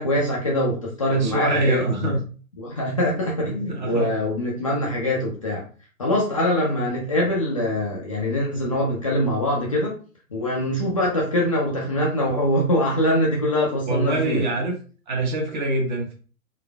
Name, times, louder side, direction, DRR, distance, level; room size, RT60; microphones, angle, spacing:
voice 1, 0.0-2.2 2.6-5.6 6.0-10.0 10.3-14.4, left 1 dB, 25° left, -4 dB, 0.5 m, -23 dB
voice 2, 1.1-2.2 3.7-4.2 13.9-14.8 15.1-16.1, right 2 dB, 35° right, 1 dB, 0.8 m, -24 dB
3.8 x 2.4 x 2.3 m, 0.38 s
figure-of-eight pair, 125°, 43 cm